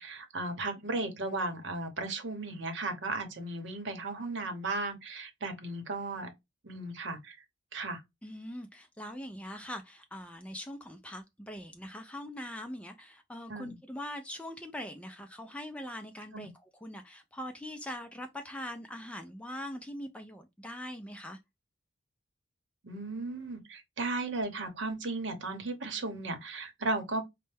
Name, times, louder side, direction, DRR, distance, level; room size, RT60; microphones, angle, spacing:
voice 1, 0.0-6.3 6.6-7.4 7.7-8.0 13.5-13.7 16.3-16.5 22.8-27.2, right 2 dB, 60° right, 0.9 m, -35 dB
voice 2, 8.2-21.4, left 1 dB, 5° left, 0.3 m, -42 dB
4.3 x 2.1 x 3.3 m
head